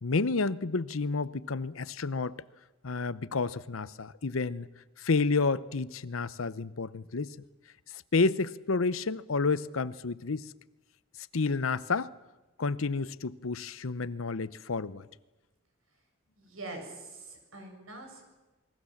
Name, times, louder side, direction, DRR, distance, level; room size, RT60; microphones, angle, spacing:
voice 1, 0.0-2.4 2.8-4.7 5.0-7.4 7.9-10.5 11.3-12.1 12.6-15.1, left 4 dB, 80° left, 0.8 m, -30 dB
voice 2, 16.4-18.2, right 2 dB, 90° right, 7.4 m, -44 dB
28.5 x 21.5 x 7.3 m
head